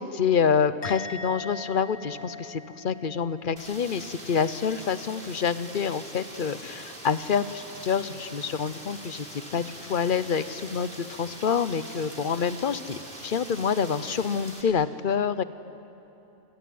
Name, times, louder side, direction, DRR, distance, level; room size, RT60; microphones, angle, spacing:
voice 1, 0.0-9.3 9.5-15.4, left 6 dB, 45° left, 14 dB, 0.8 m, -27 dB
Musical instrument, 0.8-4.2 4.5-4.9, left 3 dB, 60° left, 1.7 m, -42 dB
Rain, 3.6-14.6, right 1 dB, 35° right, 4.3 m, -43 dB
29.5 x 21.0 x 9.4 m, 2.9 s
omnidirectional pair, 1.6 m